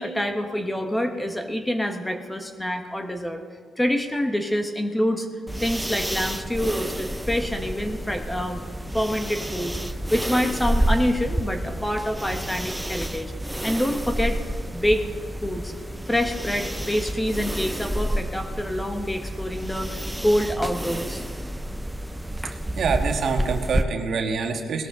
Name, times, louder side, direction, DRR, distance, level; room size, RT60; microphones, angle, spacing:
voice 1, 0.0-3.4 3.8-5.3 5.6-8.6 8.9-9.7 10.1-13.3 13.6-14.4 14.7-15.1 15.4-15.7 16.1-21.2, equal, 10° left, 5 dB, 1.2 m, -26 dB
sound 1, 5.5-23.8, right 1 dB, 5° right, 0.6 m, -29 dB
voice 2, 22.7-24.9, right 5 dB, 60° right, 3 dB, 1.6 m, -26 dB
19.0 x 13.0 x 3.8 m, 2.2 s
cardioid pair, 90°, 0 cm